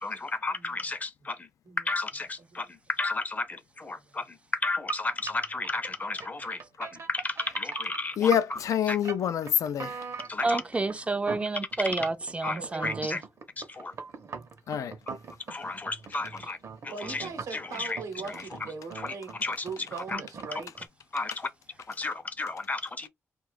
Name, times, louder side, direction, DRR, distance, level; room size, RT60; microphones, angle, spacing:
voice 1, 0.0-1.5 1.8-8.6 8.9-9.0 10.3-10.6 11.8-11.9 12.4-13.2 13.6-13.9 15.5-16.6 16.8-18.0 18.2-18.6 18.9-19.7 20.1-20.2 20.5-20.6 21.1-21.5 21.9-23.1, left 3 dB, 30° left, 0.6 m, -33 dB
sound 1, 4.9-20.9, right 5 dB, 60° right, 0.7 m, -41 dB
voice 2, 8.2-10.1 14.7-14.9, left 9 dB, 80° left, 0.4 m, -26 dB
voice 3, 10.4-13.2, right 3 dB, 20° right, 0.4 m, -29 dB
voice 4, 12.4-13.0 16.9-19.3 19.6-20.7, right 4 dB, 85° right, 0.9 m, -40 dB
2.5 x 2.3 x 3.3 m
cardioid pair, 90°, 6 cm